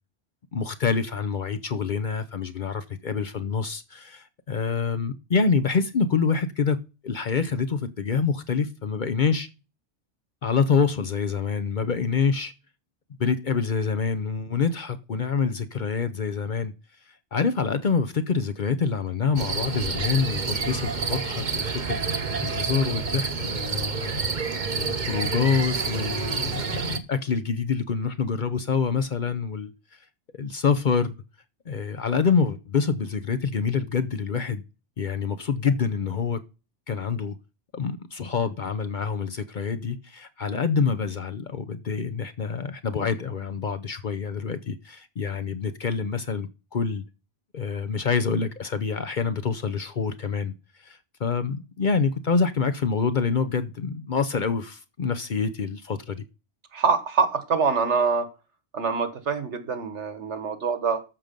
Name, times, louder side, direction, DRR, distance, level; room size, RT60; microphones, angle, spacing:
voice 1, 0.5-9.5 10.4-12.5 13.2-16.7 17.3-24.2 24.7-29.7 30.4-31.1 31.7-34.6 35.0-36.4 36.9-37.4 37.7-47.0 47.5-50.5 50.8-56.2, left 5 dB, 50° left, 0.8 m, -26 dB
sound 1, 19.4-27.0, right 4 dB, 45° right, 1.0 m, -28 dB
voice 2, 56.7-58.3 58.7-61.0, right 5 dB, 75° right, 1.7 m, -25 dB
13.0 x 6.5 x 5.2 m
omnidirectional pair, 1.2 m